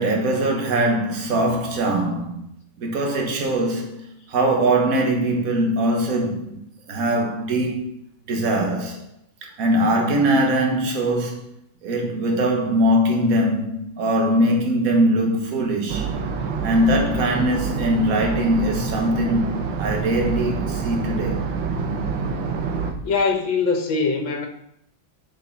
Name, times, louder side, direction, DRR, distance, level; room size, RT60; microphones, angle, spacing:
voice 1, 0.0-2.4 2.8-4.0 4.3-6.6 6.9-7.9 8.3-9.1 9.4-11.5 11.8-16.1 16.6-21.4, right 1 dB, 50° right, 1.8 m, -21 dB
voice 2, 1.3-1.6 23.0-24.5, left 4 dB, 75° left, 1.9 m, -23 dB
sound 1, 15.9-22.9, right 5 dB, 75° right, 1.6 m, -27 dB
6.8 x 5.9 x 5.5 m
omnidirectional pair, 2.1 m